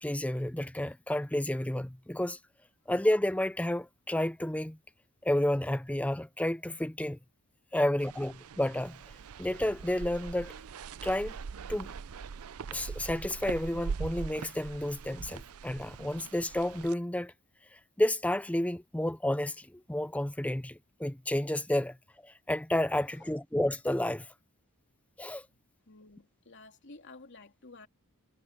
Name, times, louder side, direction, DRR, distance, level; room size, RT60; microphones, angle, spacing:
voice 1, 0.0-2.4 2.9-4.8 5.2-7.2 7.7-9.0 9.4-10.5 11.0-11.4 11.7-11.9 12.7-17.3 17.7-22.0 22.2-24.3 25.2-25.4, left 1 dB, 5° left, 0.5 m, -31 dB
sound 1, 8.0-16.9, right 5 dB, 75° right, 0.5 m, -42 dB
voice 2, 25.9-27.9, left 3 dB, 55° left, 3.0 m, -52 dB
head